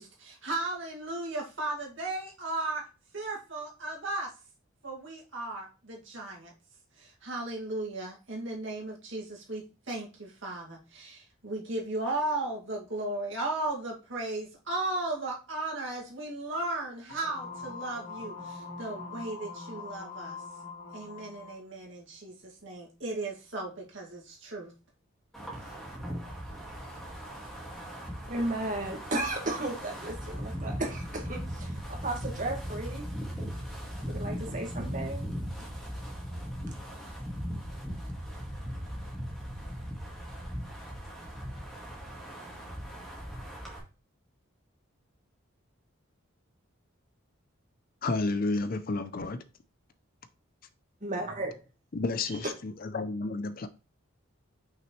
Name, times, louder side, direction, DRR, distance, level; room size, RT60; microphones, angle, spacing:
voice 1, 0.0-2.9 3.1-4.3 4.8-6.5 7.0-20.4 20.9-24.7, right 2 dB, 60° right, 2.3 m, -36 dB
sound 1, 17.1-21.6, left 4 dB, 65° left, 2.2 m, -42 dB
Wind, 25.3-43.8, equal, ahead, 2.0 m, -38 dB
voice 2, 28.3-33.0 33.7-33.8 34.0-35.3 51.0-51.6, right 2 dB, 35° right, 1.7 m, -34 dB
voice 3, 48.0-49.4 51.9-53.7, left 3 dB, 40° left, 0.5 m, -31 dB
6.1 x 5.7 x 3.2 m
head